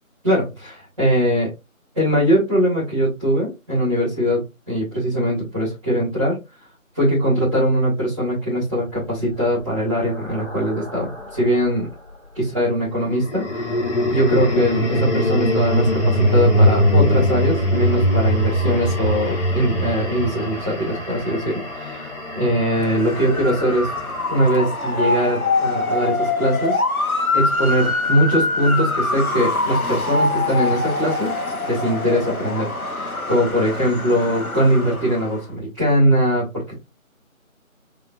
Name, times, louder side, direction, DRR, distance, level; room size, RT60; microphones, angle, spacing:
voice 1, 0.2-1.5 1.9-6.4 6.9-11.9 12.3-13.8 14.1-22.1 22.3-23.9 24.3-26.8 27.3-31.3 31.7-36.7, equal, ahead, -13 dB, 1.8 m, -21 dB
sound 1, 9.0-11.5 13.1-25.4, equal, 55° left, 1.9 m, -22 dB
Motor vehicle (road) / Siren, 22.7-35.4, left 2 dB, 90° left, 1.4 m, -24 dB
4.9 x 3.6 x 2.6 m, 0.24 s
figure-of-eight pair, 165°, 42 cm